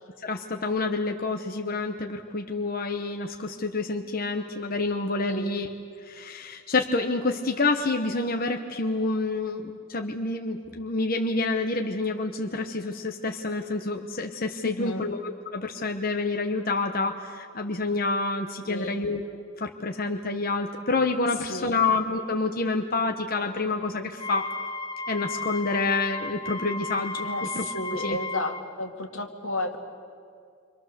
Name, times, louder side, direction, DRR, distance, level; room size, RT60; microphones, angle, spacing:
voice 1, 0.2-5.7 6.0-19.2 19.6-24.5 25.1-27.3 27.6-27.7 28.0-28.2, left 3 dB, 45° left, 4 dB, 1.0 m, -28 dB
voice 2, 14.6-15.1 18.7-19.0 21.4-21.8 27.2-29.8, left 2 dB, 85° left, 2 dB, 2.4 m, -32 dB
Wind instrument woodwind instrument, 24.1-28.6, left 2 dB, 25° left, 0.7 m, -34 dB
28.5 x 25.0 x 6.7 m, 2.3 s
head